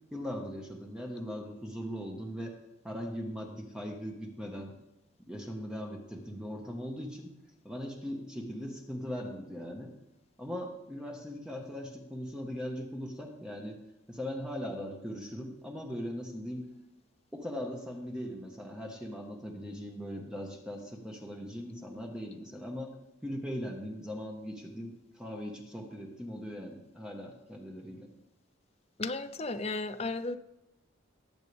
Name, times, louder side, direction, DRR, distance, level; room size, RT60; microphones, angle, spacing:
voice 1, 0.1-2.6 2.8-4.7 5.3-7.3 7.6-9.9 10.4-13.8 14.1-16.6 17.3-22.9 23.2-28.1, equal, 5° right, 0 dB, 1.4 m, -39 dB
voice 2, 29.0-30.4, left 3 dB, 30° left, 8 dB, 0.6 m, -34 dB
19.5 x 8.1 x 3.5 m, 0.91 s
head